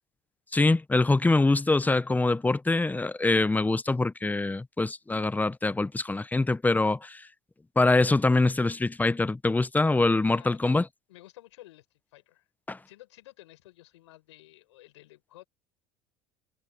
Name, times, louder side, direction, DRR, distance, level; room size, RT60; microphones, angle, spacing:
voice 1, 0.5-7.2 7.8-10.8 12.7-12.8, left 2 dB, 10° left, 0.9 m, -24 dB
voice 2, 10.3-10.6 11.1-11.9 12.1-12.5 12.9-15.4, left 16 dB, 80° left, 6.2 m, -52 dB
hypercardioid pair, 80°, 15 cm